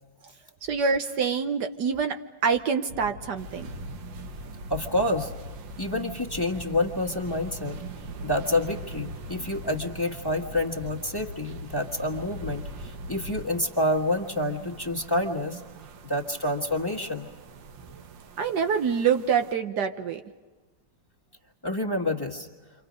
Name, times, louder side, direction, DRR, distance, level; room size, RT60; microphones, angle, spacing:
voice 1, 0.6-3.7 18.4-20.2, right 6 dB, 65° right, 7 dB, 1.5 m, -26 dB
sound 1, 2.9-13.4, left 1 dB, 45° right, 1.5 m, -41 dB
sound 2, 3.4-19.5, right 7 dB, 90° right, 1.8 m, -45 dB
voice 2, 4.7-5.3 5.8-7.8 8.2-15.6 16.0-17.3 21.6-22.5, left 1 dB, 15° left, 0 dB, 1.5 m, -28 dB
29.5 x 26.0 x 5.2 m, 1.3 s
omnidirectional pair, 2.0 m